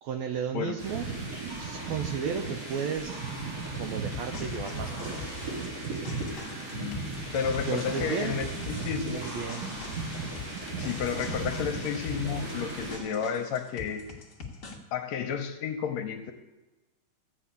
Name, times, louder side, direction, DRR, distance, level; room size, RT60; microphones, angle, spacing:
voice 1, 0.0-1.1 1.6-3.3 3.7-5.4 7.6-8.3 8.9-9.7, right 7 dB, 80° right, 6 dB, 1.7 m, -34 dB
sound 1, 0.8-13.0, right 3 dB, 50° right, 6.1 m, -36 dB
sound 2, 4.1-14.8, left 4 dB, 60° left, 0.8 m, -43 dB
voice 2, 6.7-7.1 7.3-9.2 10.8-14.1 14.9-16.3, left 7 dB, 75° left, 6 dB, 1.8 m, -32 dB
14.0 x 5.9 x 8.3 m, 1.1 s
omnidirectional pair, 3.6 m